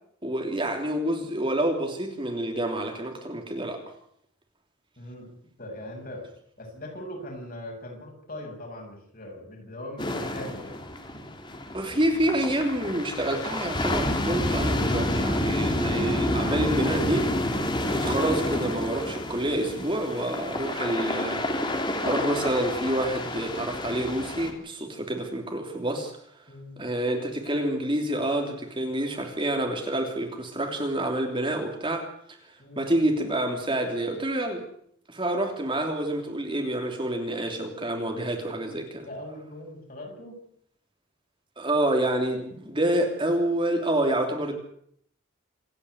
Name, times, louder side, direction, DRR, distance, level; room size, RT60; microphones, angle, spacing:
voice 1, 0.2-3.8 11.7-17.3 17.9-21.5 22.0-26.1 26.8-32.1 32.8-34.6 35.1-39.1 41.6-44.6, right 1 dB, 25° right, 3 dB, 3.1 m, -28 dB
voice 2, 5.0-5.3 5.6-6.3 6.6-10.8 26.5-26.8 32.6-32.9 39.0-40.4, left 1 dB, 45° left, 1 dB, 7.4 m, -40 dB
sound 1, 10.0-24.5, left 1 dB, 25° left, 3.0 m, -29 dB
27.0 x 10.0 x 9.7 m, 0.66 s
head